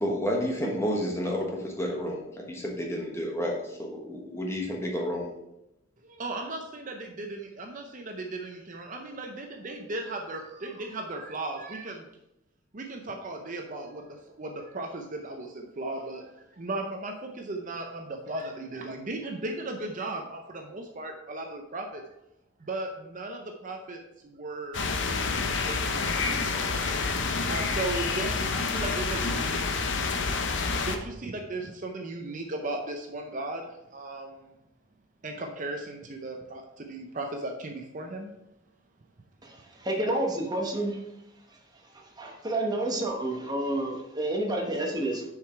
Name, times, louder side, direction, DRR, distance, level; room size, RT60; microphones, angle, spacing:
voice 1, 0.0-5.3, equal, 15° left, -1 dB, 1.2 m, -30 dB
voice 2, 6.0-12.1 12.7-22.0 22.6-26.9 27.5-29.8 30.1-30.2 30.8-34.5 35.2-38.3, right 2 dB, 40° right, 3 dB, 0.6 m, -37 dB
sound 1, 24.7-31.0, left 4 dB, 60° left, 0.7 m, -28 dB
voice 3, 39.4-41.0 42.2-45.2, right 1 dB, 20° right, 1 dB, 1.0 m, -29 dB
6.8 x 4.9 x 4.4 m, 0.88 s
head